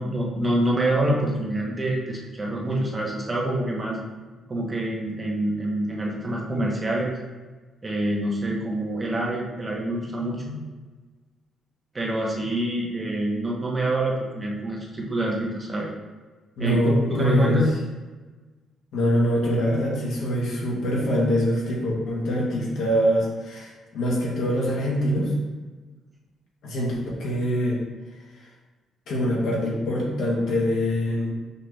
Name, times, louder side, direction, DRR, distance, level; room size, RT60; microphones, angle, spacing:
voice 1, 0.0-4.0 4.5-7.1 7.8-10.6 11.9-15.9 16.6-17.7, right 1 dB, 25° right, -2 dB, 0.9 m, -26 dB
voice 2, 16.6-17.6 18.9-25.3 26.6-27.8 29.1-31.3, equal, 75° left, -3 dB, 1.2 m, -24 dB
5.5 x 2.5 x 3.2 m, 1.3 s
cardioid pair, 90°, 0 cm